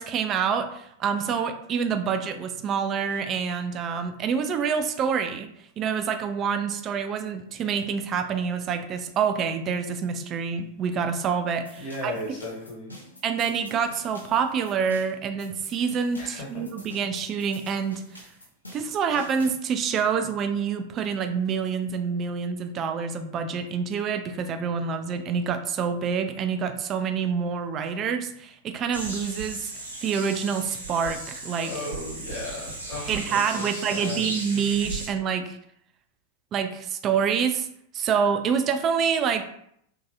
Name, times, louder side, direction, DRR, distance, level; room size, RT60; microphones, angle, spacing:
voice 1, 0.0-5.5 5.8-12.1 13.2-18.0 18.7-29.7 30.0-31.7 33.1-35.6 36.5-37.7 37.9-39.4, right 6 dB, 30° right, 7 dB, 0.3 m, -27 dB
sound 1, 11.7-19.6, left 1 dB, 85° left, 0.7 m, -48 dB
voice 2, 11.8-12.9 16.1-16.4 31.6-34.3, left 2 dB, 40° left, -4 dB, 1.3 m, -36 dB
sound 2, 28.9-35.1, right 2 dB, 80° right, 0.8 m, -36 dB
2.9 x 2.8 x 2.5 m, 0.70 s
figure-of-eight pair, 90°, 0 cm